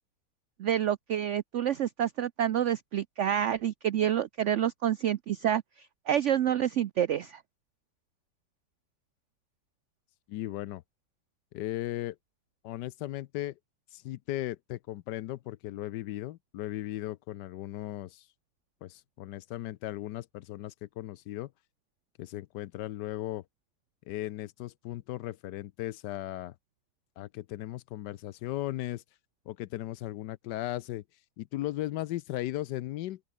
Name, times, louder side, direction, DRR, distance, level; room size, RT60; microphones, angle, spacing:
voice 1, 0.6-5.6 6.1-7.4, right 10 dB, 85° right, 0.6 m, -28 dB
voice 2, 10.3-10.8 11.5-12.2 12.6-13.5 13.9-18.2 18.8-21.5 22.2-23.4 24.1-26.5 27.2-29.0 29.5-31.0 31.4-33.3, left 15 dB, 75° left, 1.2 m, -37 dB
open air
omnidirectional pair, 1.9 m